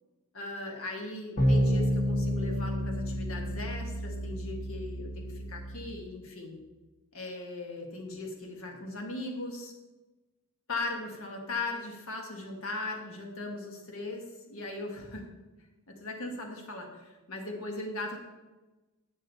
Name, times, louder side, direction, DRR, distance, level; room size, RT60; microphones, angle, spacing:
voice 1, 0.3-6.6 7.1-9.7 10.7-14.2 14.5-15.2 16.0-18.2, left 2 dB, 70° left, 1 dB, 1.5 m, -38 dB
sound 1, 1.4-6.1, equal, 40° left, 1.8 m, -30 dB
9.8 x 6.2 x 4.1 m, 1.1 s
head